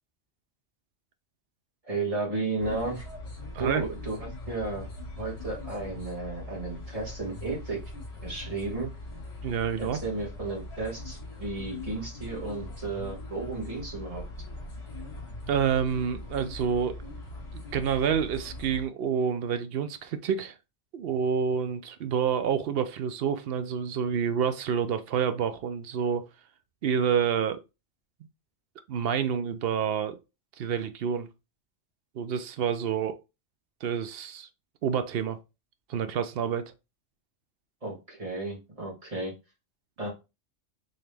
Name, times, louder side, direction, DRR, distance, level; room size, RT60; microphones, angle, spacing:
voice 1, 1.8-3.1 3.6-4.9 5.2-7.8 8.2-8.9 9.8-14.2 37.8-39.3 40.0-40.1, right 3 dB, 30° right, 1.5 m, -33 dB
sound 1, 2.6-18.9, left 2 dB, 50° left, 2.2 m, -41 dB
voice 2, 9.4-10.0 15.5-16.9 17.5-20.5 20.9-26.2 26.8-27.6 28.9-30.2 30.6-31.3 32.2-33.2 33.8-34.5 34.8-35.4 35.9-36.7, right 7 dB, 60° right, 0.7 m, -28 dB
3.9 x 3.0 x 3.3 m
omnidirectional pair, 1.3 m